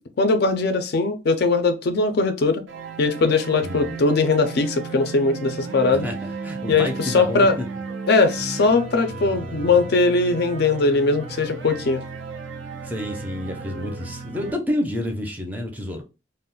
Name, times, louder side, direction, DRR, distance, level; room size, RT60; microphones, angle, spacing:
voice 1, 0.2-2.6 3.0-6.1 6.7-7.5 8.1-12.0, left 3 dB, 55° left, 0.4 m, -20 dB
sound 1, 2.7-14.5, right 4 dB, 80° right, 0.5 m, -35 dB
voice 2, 3.6-4.0 6.0-7.7 8.4-8.6 9.1-9.6 12.8-16.0, left 1 dB, 10° right, 0.4 m, -30 dB
2.3 x 2.0 x 3.7 m
head